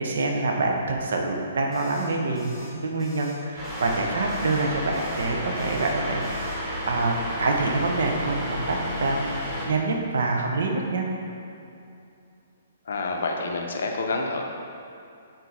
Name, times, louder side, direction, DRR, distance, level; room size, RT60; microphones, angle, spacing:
voice 1, 0.0-11.1, right 3 dB, 60° right, 1 dB, 0.5 m, -26 dB
sound 1, 1.7-2.1 2.4-2.7 3.0-3.4 3.6-4.0 4.3-4.6 4.9-5.3 5.6-5.9 6.2-6.6, left 2 dB, 15° left, 1.0 m, -47 dB
sound 2, 3.5-9.7, equal, 5° right, 1.3 m, -32 dB
voice 2, 12.9-14.4, left 3 dB, 60° left, 1 dB, 0.5 m, -28 dB
4.3 x 3.9 x 3.2 m, 2.6 s
figure-of-eight pair, 120°, 0 cm